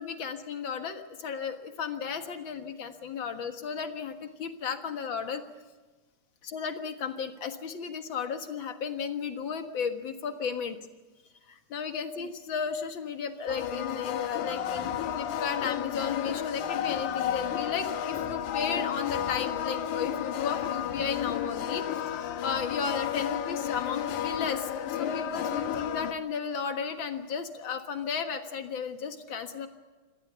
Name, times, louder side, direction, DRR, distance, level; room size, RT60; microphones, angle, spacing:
voice 1, 0.0-5.4 6.4-10.8 11.5-22.1 22.4-29.7, left 6 dB, 45° left, 6 dB, 1.9 m, -34 dB
sound 1, 13.5-26.1, left 9 dB, 80° left, 2.6 m, -32 dB
26.0 x 18.5 x 6.9 m, 1.3 s
omnidirectional pair, 3.5 m